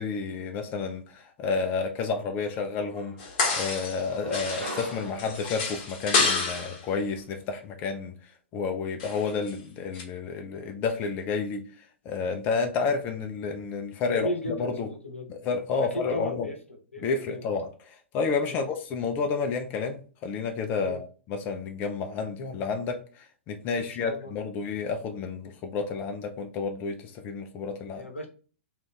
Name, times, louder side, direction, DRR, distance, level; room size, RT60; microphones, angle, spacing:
voice 1, 0.0-8.2 8.5-14.9 15.3-16.5 17.0-28.1, left 5 dB, 30° left, 0.4 m, -30 dB
sound 1, 2.4-2.5 2.8-3.6 4.1-6.7, right 1 dB, 85° right, 0.9 m, -42 dB
sound 2, 3.2-4.1 4.3-6.8 9.0-9.5 9.9-10.0, left 4 dB, 45° left, 1.0 m, -28 dB
voice 2, 14.1-15.3 15.9-16.6 16.9-17.4 18.5-18.6 20.8-21.0 23.8-24.3 28.0-28.3, left 1 dB, 85° left, 0.7 m, -35 dB
2.5 x 2.4 x 3.5 m
figure-of-eight pair, 110°, 7 cm